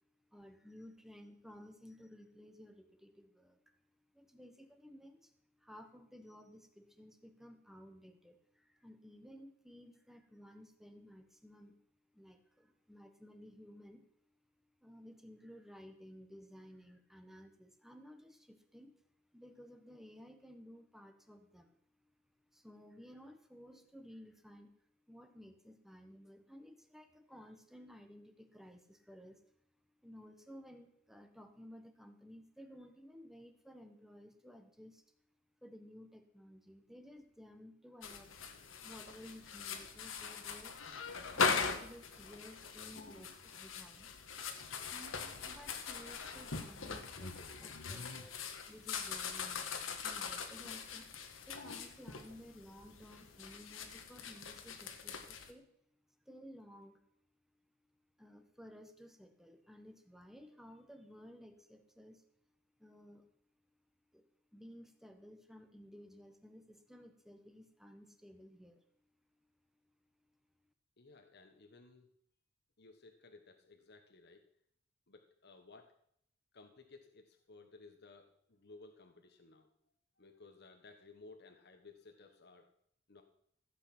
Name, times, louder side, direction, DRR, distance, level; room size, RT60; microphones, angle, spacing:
voice 1, 0.3-3.6 4.1-5.3 5.6-11.9 12.1-14.1 14.8-19.0 19.3-21.8 22.5-24.7 25.1-29.4 30.0-35.0 35.6-38.3 38.8-40.8 41.3-44.1 44.9-47.3 47.6-51.1 51.4-55.7 56.2-57.0 58.2-62.2 62.8-63.2 64.1-68.8, equal, ahead, 7 dB, 1.2 m, -56 dB
sound 1, 38.0-55.5, left 5 dB, 75° left, 1.5 m, -41 dB
voice 2, 71.0-72.1 72.8-74.5 75.1-76.0 76.5-79.7 80.2-82.7 83.1-83.2, left 3 dB, 55° left, 5 dB, 1.2 m, -58 dB
15.0 x 8.4 x 6.0 m, 0.69 s
head